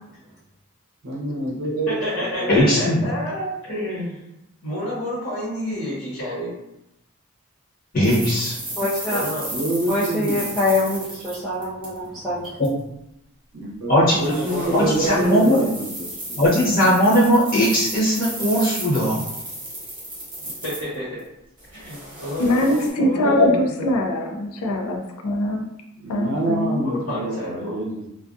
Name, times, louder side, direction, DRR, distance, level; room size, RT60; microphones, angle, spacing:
voice 1, 1.0-1.9 2.4-2.6 9.5-10.6 13.5-13.9 14.2-16.4 26.0-27.9, right 2 dB, 65° right, -2 dB, 0.6 m, -26 dB
voice 2, 1.9-4.2 4.6-6.5 9.1-9.4 14.2-15.7 20.4-21.1 21.7-23.8 26.8-27.8, left 1 dB, 70° left, -12 dB, 1.0 m, -29 dB
voice 3, 2.5-3.0 7.9-8.6 12.6-12.7 13.9-14.2 14.7-15.6 16.4-19.2, equal, 40° left, -8 dB, 0.8 m, -18 dB
sound 1, 8.0-12.1 12.4-12.7 14.1-21.2 21.6-22.9, right 1 dB, 25° right, 0.8 m, -34 dB
voice 4, 8.8-9.2 9.9-12.4, left 2 dB, ahead, -10 dB, 0.3 m, -24 dB
voice 5, 22.4-25.7 26.1-26.8, left 1 dB, 90° left, 3 dB, 0.4 m, -22 dB
2.3 x 2.2 x 2.5 m, 0.84 s
head